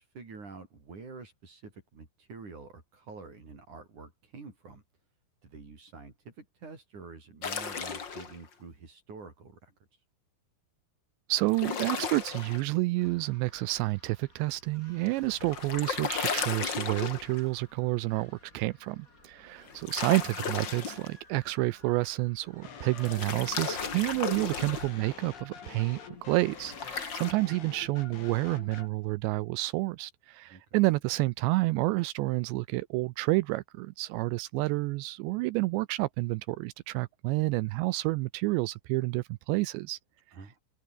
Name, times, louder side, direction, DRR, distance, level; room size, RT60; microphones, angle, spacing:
voice 1, 0.0-4.8 5.4-9.7 19.7-19.9 20.4-20.5 30.5-30.6 40.3-40.6, right 4 dB, 40° right, 6.5 m, -47 dB
sound 1, 7.4-8.3 11.5-12.6 15.1-17.5 19.7-21.1 23.0-24.9 26.6-27.3, left 6 dB, 40° left, 1.6 m, -35 dB
voice 2, 11.3-40.0, right 21 dB, 80° right, 2.6 m, -29 dB
sound 2, 13.0-28.2, left 2 dB, 15° left, 6.4 m, -58 dB
sound 3, 22.6-28.9, left 6 dB, 80° left, 7.5 m, -47 dB
omnidirectional pair, 5.5 m